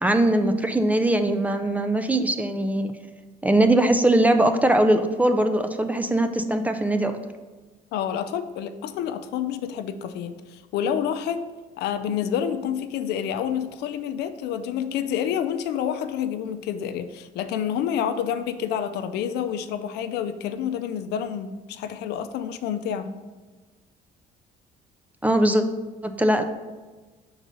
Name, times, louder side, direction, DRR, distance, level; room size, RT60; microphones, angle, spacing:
voice 1, 0.0-2.9 3.4-7.1 25.2-25.6 26.0-26.4, right 1 dB, 10° right, 7 dB, 0.4 m, -21 dB
voice 2, 7.9-11.4 11.8-23.1, left 9 dB, 80° left, 10 dB, 0.5 m, -28 dB
4.9 x 3.9 x 5.4 m, 1.3 s
cardioid pair, 110°, 17 cm